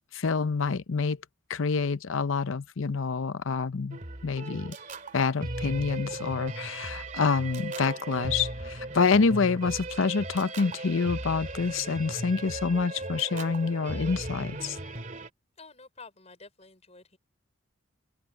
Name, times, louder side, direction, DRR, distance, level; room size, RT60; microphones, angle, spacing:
voice 1, 0.1-1.2 1.5-4.8 5.1-14.8, left 4 dB, 75° left, 0.7 m, -27 dB
sound 1, 3.9-15.3, right 2 dB, 40° right, 2.5 m, -37 dB
voice 2, 15.6-17.2, left 4 dB, 30° left, 5.1 m, -50 dB
open air
head